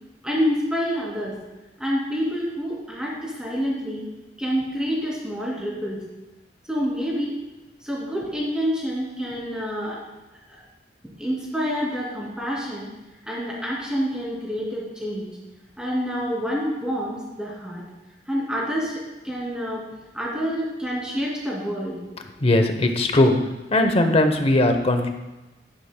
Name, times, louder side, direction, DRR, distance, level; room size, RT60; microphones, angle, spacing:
voice 1, 0.2-1.3 1.8-4.0 4.4-6.0 6.7-7.3 7.8-10.0 10.5-10.6 11.2-12.9 13.3-15.3 15.8-17.8 18.3-19.8 20.1-22.0, equal, 5° right, -5 dB, 2.6 m, -27 dB
voice 2, 22.4-23.4 23.7-25.1, left 1 dB, 35° left, 6 dB, 0.8 m, -19 dB
12.0 x 9.7 x 2.2 m, 1.1 s
head